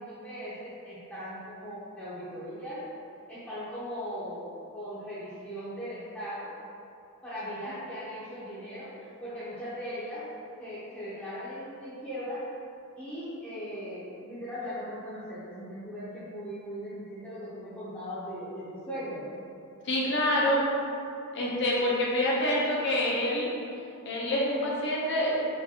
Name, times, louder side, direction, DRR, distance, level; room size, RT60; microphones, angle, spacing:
voice 1, 0.2-2.8 3.3-4.4 4.7-6.5 7.2-10.3 10.6-12.4 13.0-19.4, equal, 5° left, -15 dB, 0.8 m, -39 dB
voice 2, 19.8-20.6 21.3-23.5 24.1-25.4, left 1 dB, 55° left, -4 dB, 0.8 m, -26 dB
4.7 x 2.6 x 2.9 m, 2.6 s
head